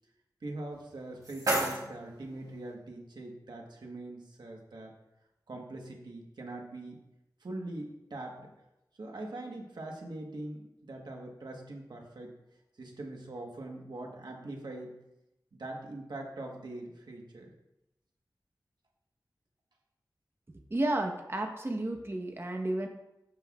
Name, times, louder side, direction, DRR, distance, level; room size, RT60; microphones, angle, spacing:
voice 1, 0.4-4.9 5.5-7.0 7.4-8.5 9.0-12.3 12.8-14.9 15.5-17.5, right 2 dB, 80° right, 1 dB, 1.4 m, -42 dB
sound 1, 0.7-2.7, right 1 dB, 65° right, 3.1 m, -34 dB
voice 2, 20.7-22.9, right 1 dB, 35° right, 3 dB, 1.1 m, -32 dB
13.0 x 5.6 x 2.5 m, 0.89 s
wide cardioid pair, 70°, 7 cm